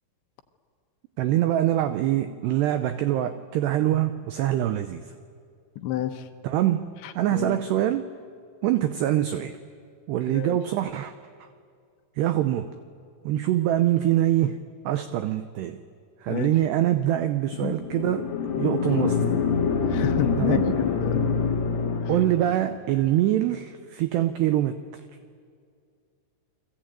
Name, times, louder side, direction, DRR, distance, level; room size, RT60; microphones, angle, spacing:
voice 1, 1.2-5.1 6.4-6.8 7.1-8.1 8.6-9.6 10.1-11.1 11.4-11.5 12.2-12.7 13.2-14.6 14.8-15.8 16.2-18.3 18.6-19.3 20.4-20.8 22.1-25.0, right 13 dB, 85° right, 10 dB, 2.4 m, -24 dB
voice 2, 5.8-6.3 7.0-7.6 10.3-10.6 16.3-16.5 17.6-17.7 19.8-21.3, left 11 dB, 75° left, 7 dB, 3.0 m, -29 dB
sound 1, 17.8-22.7, left 5 dB, 50° left, 2.1 m, -25 dB
29.0 x 21.5 x 9.0 m, 2.2 s
omnidirectional pair, 5.9 m